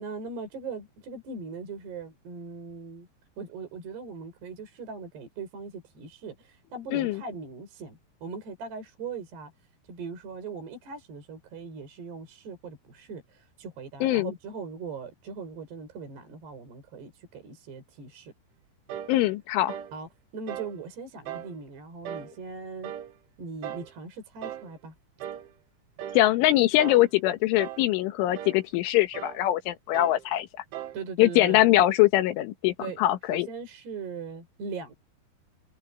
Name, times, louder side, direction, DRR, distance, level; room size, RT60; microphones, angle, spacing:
voice 1, 0.0-3.1 3.4-9.5 9.9-18.3 19.9-20.1 20.3-22.9 23.4-24.9 30.9-31.6 32.8-33.0 33.3-34.9, right 4 dB, 60° right, 8.0 m, -40 dB
voice 2, 14.0-14.3 19.1-19.8 26.2-30.5 31.2-33.5, left 15 dB, 90° left, 3.8 m, -23 dB
sound 1, 18.9-19.2 19.7-20.0 20.5-20.8 21.3-21.5 22.1-22.4 22.8-23.1 23.6-23.9 24.4-24.7 25.2-25.5 26.0-26.3 26.8-27.1 27.6-27.9 28.4-28.6 29.1-29.4 29.9-30.2 30.7-31.0, right 11 dB, 80° right, 3.8 m, -38 dB
omnidirectional pair, 5.4 m